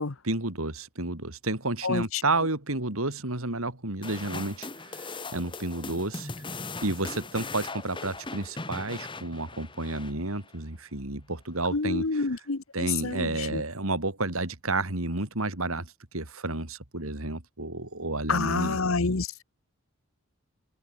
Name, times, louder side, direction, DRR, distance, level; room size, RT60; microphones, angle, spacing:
voice 1, 0.2-6.3 6.8-12.0 12.7-18.8, right 2 dB, 75° right, 3.7 m, -31 dB
voice 2, 1.8-2.2 11.7-13.6 18.3-19.4, left 4 dB, 70° left, 1.1 m, -28 dB
sound 1, 4.0-10.6, left 3 dB, 20° left, 2.5 m, -39 dB
head